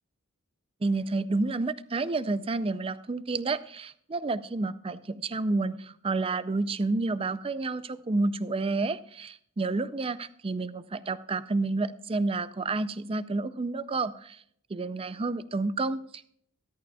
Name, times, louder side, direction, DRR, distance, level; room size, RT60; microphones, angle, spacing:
voice 1, 0.8-14.4 14.7-16.3, right 3 dB, 25° right, 15 dB, 0.4 m, -30 dB
14.0 x 13.0 x 2.3 m, 0.65 s
head